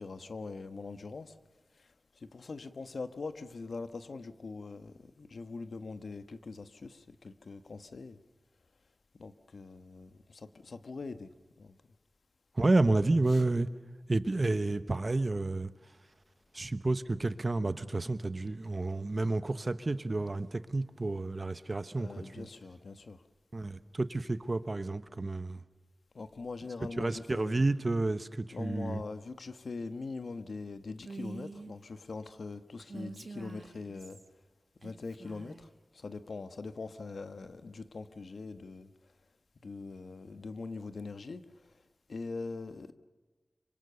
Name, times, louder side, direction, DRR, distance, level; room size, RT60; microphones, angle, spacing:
voice 1, 0.0-1.3 2.3-8.2 9.2-11.3 11.6-11.7 13.3-13.4 21.9-23.2 26.1-27.6 28.5-34.2 34.8-35.7 35.9-38.9 39.6-41.4 42.1-42.9, left 3 dB, 80° left, 1.2 m, -42 dB
voice 2, 12.6-13.7 14.1-15.7 16.5-22.5 23.5-25.6 27.0-29.0, right 2 dB, 40° right, 1.0 m, -30 dB
Female speech woman speaking, 31.0-31.7 32.8-34.3 34.8-35.7, right 3 dB, 60° right, 1.2 m, -45 dB
25.5 x 25.0 x 6.9 m
wide cardioid pair, 85°, 0 cm